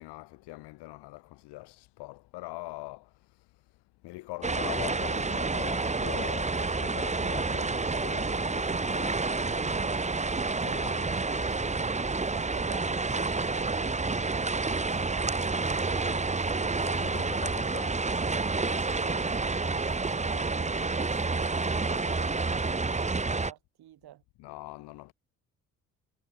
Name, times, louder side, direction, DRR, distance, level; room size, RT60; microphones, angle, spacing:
voice 1, 0.0-11.8 16.8-18.2 24.4-25.1, left 20 dB, 65° left, 3.5 m, -43 dB
sound 1, 4.4-23.5, right 3 dB, 15° right, 1.4 m, -29 dB
voice 2, 12.3-16.9 18.7-24.2, right 13 dB, 60° right, 6.0 m, -48 dB
figure-of-eight pair, 40°, 43 cm